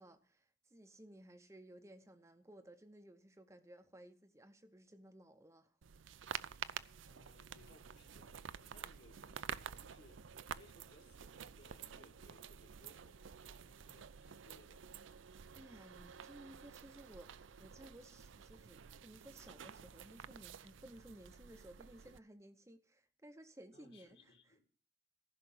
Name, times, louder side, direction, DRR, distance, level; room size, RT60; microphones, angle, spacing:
voice 1, 0.0-5.8 15.5-24.3, right 1 dB, 15° right, 0.7 m, -58 dB
sound 1, 5.8-22.2, right 8 dB, 85° right, 0.5 m, -50 dB
voice 2, 7.0-10.2 10.5-14.8 23.7-24.6, left 2 dB, 60° left, 2.4 m, -65 dB
15.0 x 5.9 x 7.7 m
head